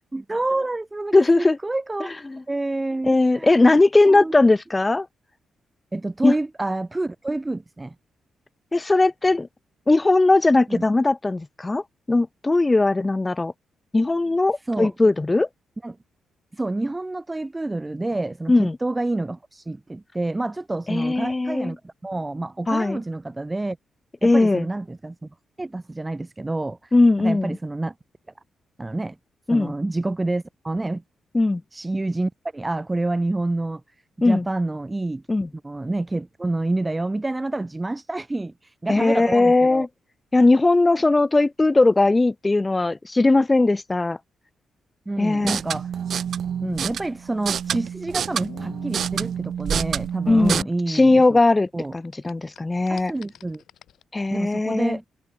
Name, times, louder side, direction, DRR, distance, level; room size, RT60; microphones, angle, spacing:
voice 1, 0.1-2.1 2.5-3.7 4.0-4.3 5.9-7.9 10.7-10.9 14.6-14.9 15.8-16.0 16.5-23.8 24.2-25.3 25.6-26.9 27.2-27.9 28.8-29.2 29.5-31.0 31.7-33.8 34.2-35.2 35.6-39.9 45.1-45.9 46.6-51.4 51.7-51.9 52.9-53.6 54.3-55.0, right 2 dB, 15° right, 1.0 m, -28 dB
voice 2, 1.1-1.6 2.3-2.4 3.0-5.1 6.2-6.3 8.7-9.5 9.9-13.5 13.9-15.5 18.5-18.8 20.9-21.7 22.7-23.0 24.2-24.6 26.9-27.6 29.5-29.7 31.3-31.6 34.2-34.4 35.3-35.5 38.9-39.9 40.3-44.2 45.2-45.6 50.3-53.1 54.1-55.0, left 2 dB, 20° left, 0.5 m, -19 dB
sound 1, 45.3-50.6, right 8 dB, 65° right, 1.1 m, -28 dB
sound 2, 47.2-51.6 51.8-54.0, left 10 dB, 80° left, 4.0 m, -47 dB
cardioid pair, 100°, 0 cm